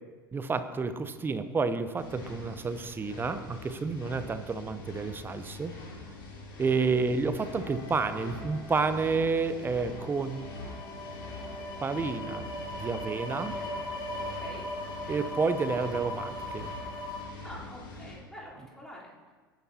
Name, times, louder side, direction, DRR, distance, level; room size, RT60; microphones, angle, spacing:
voice 1, 0.3-5.7 6.6-10.5 11.8-13.5 15.1-16.7, right 4 dB, 15° right, 11 dB, 0.8 m, -30 dB
sound 1, 2.0-18.2, left 2 dB, 60° left, 3.7 m, -44 dB
sound 2, 7.6-17.2, left 1 dB, 40° left, 3.0 m, -40 dB
voice 2, 14.2-14.7 17.4-19.1, equal, 5° left, -7 dB, 3.8 m, -47 dB
19.0 x 10.5 x 2.9 m, 1.4 s
figure-of-eight pair, 80°, 12 cm